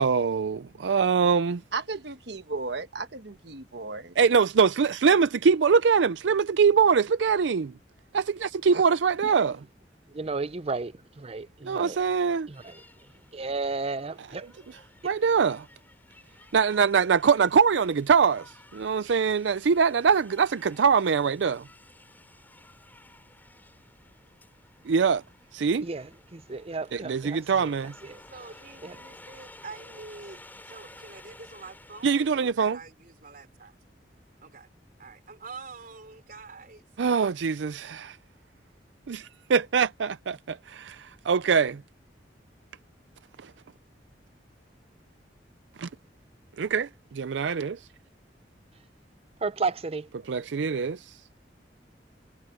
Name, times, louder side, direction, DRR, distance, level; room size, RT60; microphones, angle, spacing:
voice 1, 0.0-1.6 4.2-7.7 8.1-9.6 11.7-12.5 14.2-14.3 14.7-15.7 16.5-21.6 24.9-25.2 25.5-25.8 26.9-27.9 32.0-32.8 37.0-38.2 39.1-41.8 43.4-43.5 45.8-45.9 46.6-47.8 50.3-51.0, right 6 dB, 90° right, 0.5 m, -23 dB
voice 2, 1.7-4.1 8.7-8.8, right 4 dB, 70° right, 1.3 m, -35 dB
voice 3, 10.1-12.0 12.5-12.8 13.3-14.5 15.0-15.1 25.8-27.7 28.0-28.2 28.8-28.9 49.4-50.1, right 4 dB, 35° right, 0.6 m, -33 dB
sound 1, 12.5-32.4, left 2 dB, 10° left, 6.6 m, -53 dB
voice 4, 28.3-33.8 34.4-34.7 35.0-37.3, right 4 dB, 50° right, 3.6 m, -46 dB
head